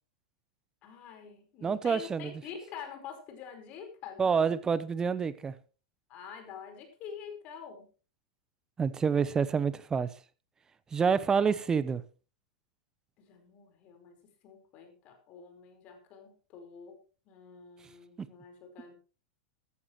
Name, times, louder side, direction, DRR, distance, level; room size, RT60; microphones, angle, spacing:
voice 1, 0.8-4.6 6.1-7.9 13.2-14.2 14.4-17.0 17.3-18.9, left 7 dB, 40° left, 4.9 m, -47 dB
voice 2, 1.6-2.3 4.2-5.5 8.8-10.1 10.9-12.0 18.2-18.3, right 6 dB, 20° right, 0.9 m, -27 dB
14.0 x 14.0 x 3.2 m
hypercardioid pair, 100°, 3 cm